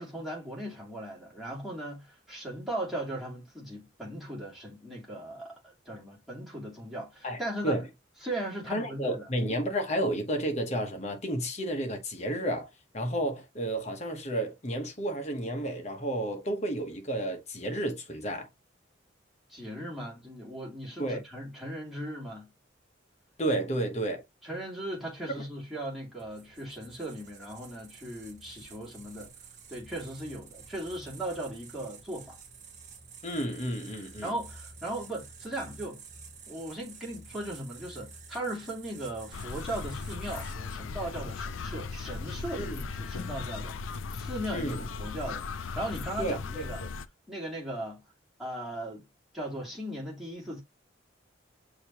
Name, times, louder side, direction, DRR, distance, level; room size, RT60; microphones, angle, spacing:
voice 1, 0.0-7.8 8.2-9.3 19.5-22.5 24.4-29.3 29.7-32.4 34.2-36.0 36.5-46.8 47.3-48.0 48.4-49.1 49.3-50.6, right 1 dB, ahead, 2.3 m, -38 dB
voice 2, 7.2-7.8 8.7-12.7 12.9-18.5 21.0-21.2 23.4-24.2 25.4-25.5 33.2-34.3 42.6-42.8 44.5-44.8 46.2-46.9, right 1 dB, 35° left, 1.1 m, -31 dB
sound 1, 26.2-40.5, right 4 dB, 35° right, 0.9 m, -50 dB
sound 2, 39.3-47.1, left 4 dB, 85° left, 0.5 m, -37 dB
6.4 x 2.8 x 2.9 m
head